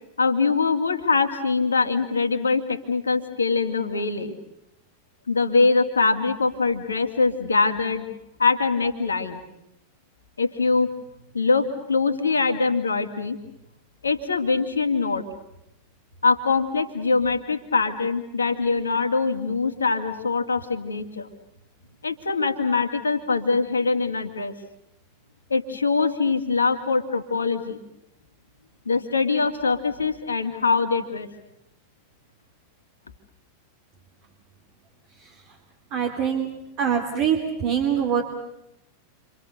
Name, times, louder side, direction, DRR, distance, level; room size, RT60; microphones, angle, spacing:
voice 1, 0.2-4.4 5.3-8.1 8.4-9.4 10.4-10.9 11.3-13.4 14.0-15.2 16.2-21.3 22.0-24.5 25.5-27.8 28.9-31.3, left 4 dB, 75° left, 7 dB, 2.5 m, -23 dB
voice 2, 35.9-36.5 36.8-38.2, right 8 dB, 40° right, 3 dB, 2.9 m, -23 dB
29.5 x 26.0 x 6.7 m, 0.86 s
figure-of-eight pair, 90°, 0 cm